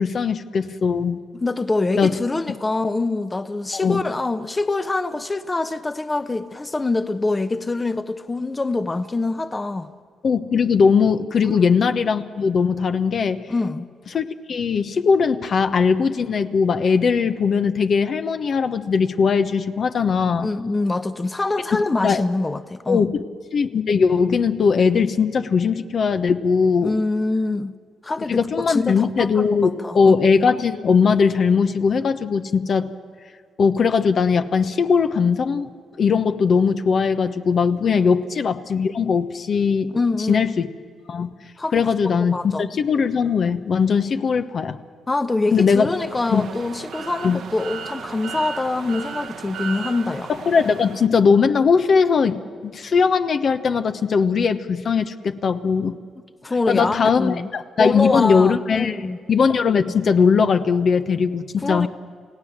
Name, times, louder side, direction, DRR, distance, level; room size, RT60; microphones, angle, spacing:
voice 1, 0.0-1.2 2.0-2.1 3.7-4.0 10.2-13.5 14.1-20.5 21.7-22.2 22.9-23.2 23.5-26.9 28.3-32.9 33.6-35.7 36.0-39.9 40.3-40.7 41.1-41.3 41.7-44.8 45.5-45.9 46.3-46.5 47.2-47.4 50.3-56.0 56.7-61.9, left 5 dB, 55° left, 8 dB, 1.1 m, -19 dB
voice 2, 1.3-9.9 11.4-11.7 13.5-13.9 20.4-23.1 26.8-27.7 28.0-30.1 37.8-38.0 39.9-40.4 41.6-42.6 45.1-50.3 56.4-57.5 57.8-59.2 61.6-61.9, left 2 dB, 20° left, 10 dB, 1.0 m, -25 dB
sound 1, 45.8-51.1, right 6 dB, 75° right, 1.5 m, -35 dB
29.0 x 17.0 x 7.4 m, 2.1 s
cardioid pair, 80°, 0 cm